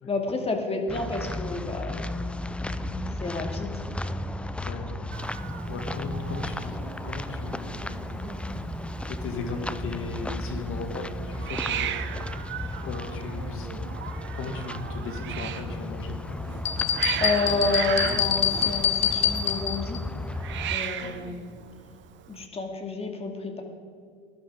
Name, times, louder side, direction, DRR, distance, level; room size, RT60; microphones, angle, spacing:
voice 1, 0.0-2.0 3.1-3.7 17.2-20.0 20.7-21.5 22.3-23.6, left 3 dB, 20° left, 3 dB, 2.3 m, -29 dB
sound 1, 0.9-20.8, left 1 dB, 5° left, 0.4 m, -34 dB
voice 2, 4.6-4.9 5.7-7.8 9.0-12.3 12.8-13.7 14.3-16.4 18.0-18.2 21.0-21.2, left 3 dB, 45° left, 4 dB, 2.3 m, -37 dB
Hiss, 5.1-22.5, right 10 dB, 40° right, 0.9 m, -37 dB
sound 2, 16.7-20.0, left 9 dB, 85° left, 1.1 m, -25 dB
20.0 x 11.0 x 3.8 m, 2.2 s
hypercardioid pair, 80°, 29 cm